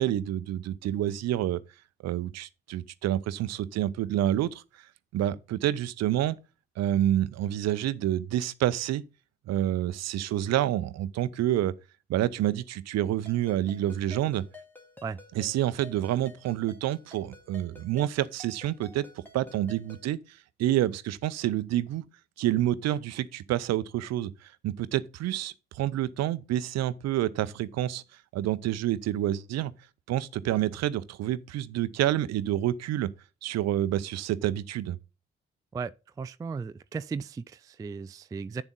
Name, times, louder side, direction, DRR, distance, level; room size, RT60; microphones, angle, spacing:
voice 1, 0.0-1.6 2.0-4.6 5.1-6.4 6.8-9.0 9.5-11.7 12.1-14.4 15.4-19.0 19.3-22.0 22.4-28.0 28.3-29.7 30.1-33.1 33.4-35.0, right 12 dB, 50° right, 0.6 m, -28 dB
Ringtone, 13.3-20.1, left 3 dB, 5° left, 2.2 m, -52 dB
voice 2, 36.2-38.6, right 5 dB, 10° right, 0.3 m, -36 dB
9.0 x 7.1 x 3.8 m
figure-of-eight pair, 40°, 33 cm